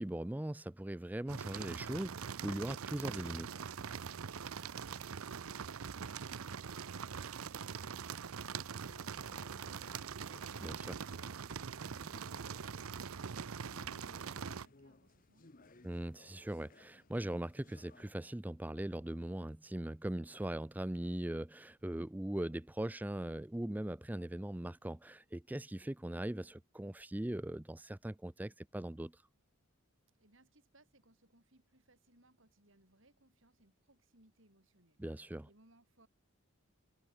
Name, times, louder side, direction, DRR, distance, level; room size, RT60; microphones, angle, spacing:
voice 1, 0.0-3.5 10.6-11.0 15.8-29.2 35.0-35.5, right 1 dB, 10° right, 0.4 m, -40 dB
sound 1, 1.3-14.7, right 6 dB, 80° right, 0.6 m, -43 dB
sound 2, 6.7-18.1, left 2 dB, 40° left, 1.0 m, -63 dB
voice 2, 11.4-16.0 30.2-35.0 35.4-36.1, right 2 dB, 65° right, 3.9 m, -69 dB
head